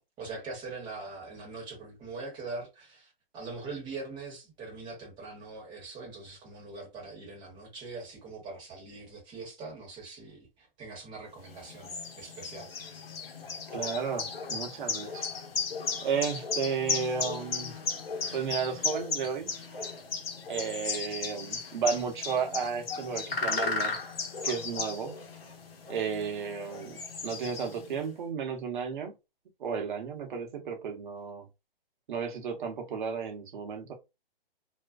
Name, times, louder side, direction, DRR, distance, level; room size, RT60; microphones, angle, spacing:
voice 1, 0.2-12.7, right 3 dB, 15° right, 0.9 m, -42 dB
sound 1, 11.4-28.0, left 5 dB, 75° left, 0.9 m, -35 dB
voice 2, 13.7-15.3 16.0-17.7 18.3-19.5 20.5-24.0 24.4-25.1 25.9-27.0 27.2-29.1 29.6-31.5 32.1-33.9, right 6 dB, 55° right, 0.8 m, -33 dB
2.4 x 2.2 x 2.3 m
hypercardioid pair, 145°, 30 cm